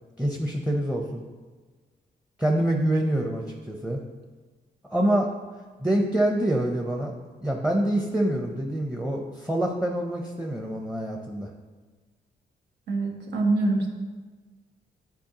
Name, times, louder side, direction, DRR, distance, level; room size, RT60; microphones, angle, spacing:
voice 1, 0.2-1.2 2.4-4.0 4.9-5.3 5.8-7.1 7.4-11.5, right 1 dB, 5° right, 2 dB, 0.7 m, -26 dB
voice 2, 12.9-13.9, right 2 dB, 75° right, 0 dB, 1.2 m, -24 dB
9.2 x 4.3 x 2.9 m, 1.4 s
cardioid pair, 70°, 18 cm